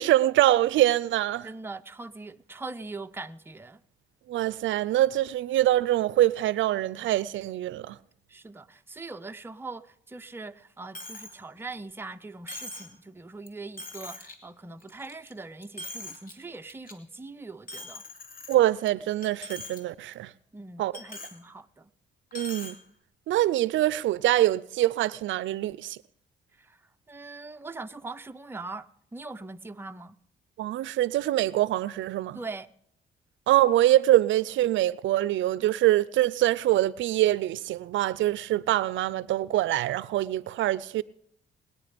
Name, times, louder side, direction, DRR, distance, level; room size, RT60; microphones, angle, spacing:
voice 1, 0.0-1.5 4.3-8.0 18.5-20.3 20.8-20.9 22.3-22.8 23.3-26.0 30.6-32.4 33.5-41.0, right 14 dB, 75° right, 0.5 m, -24 dB
voice 2, 1.4-3.8 8.3-18.0 20.5-21.9 26.6-26.8 27.1-30.1 32.3-32.7, right 3 dB, 10° right, 0.6 m, -41 dB
Coin (dropping), 10.9-11.4 11.7-11.8 12.5-12.9 13.5-13.6 13.8-14.3 14.8-15.3 15.6-16.3 16.7-16.9 17.7-18.9 19.2-19.8 20.1-20.2 20.9-21.4 22.3-22.8, left 1 dB, 45° left, 2.2 m, -41 dB
20.0 x 9.9 x 5.1 m
cardioid pair, 90°, 20 cm